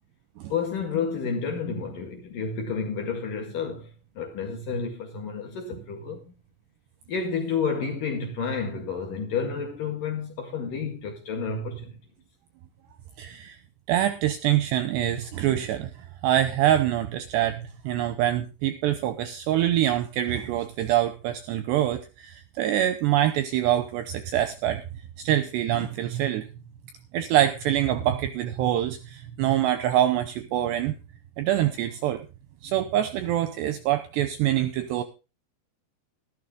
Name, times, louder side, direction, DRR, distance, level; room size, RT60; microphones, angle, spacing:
voice 1, 0.5-3.9 4.2-6.2 7.1-12.0, left 5 dB, 55° left, 2.8 m, -30 dB
voice 2, 13.2-13.6 13.9-15.9 16.2-24.8 25.2-26.5 27.1-30.9 31.4-32.2 32.6-35.0, right 12 dB, 80° right, 2.5 m, -25 dB
13.5 x 13.0 x 3.7 m
omnidirectional pair, 5.8 m